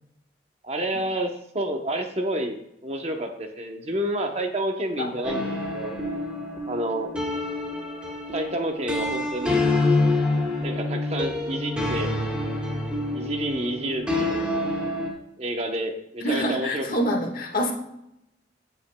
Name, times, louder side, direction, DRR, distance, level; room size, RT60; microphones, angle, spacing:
voice 1, 0.6-6.0 6.7-7.1 8.3-9.6 10.6-12.1 13.1-14.5 15.4-16.9, right 1 dB, 35° right, 4 dB, 0.8 m, -29 dB
sound 1, 5.2-15.1, left 2 dB, 5° right, 1.4 m, -27 dB
voice 2, 16.2-17.7, equal, 50° left, 2 dB, 1.5 m, -26 dB
16.0 x 6.0 x 2.2 m, 0.81 s
head